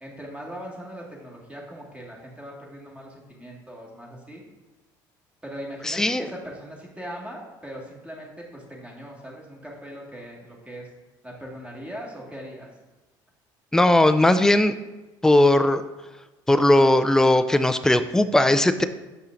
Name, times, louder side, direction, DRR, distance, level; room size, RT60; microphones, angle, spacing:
voice 1, 0.0-4.4 5.4-10.9 11.2-12.7, equal, 10° right, -2 dB, 1.8 m, -40 dB
voice 2, 5.9-6.3 13.7-14.8 15.2-15.8 16.5-18.8, left 1 dB, 5° left, 10 dB, 0.4 m, -18 dB
6.9 x 5.5 x 2.6 m, 1.1 s
supercardioid pair, 90°, 10 cm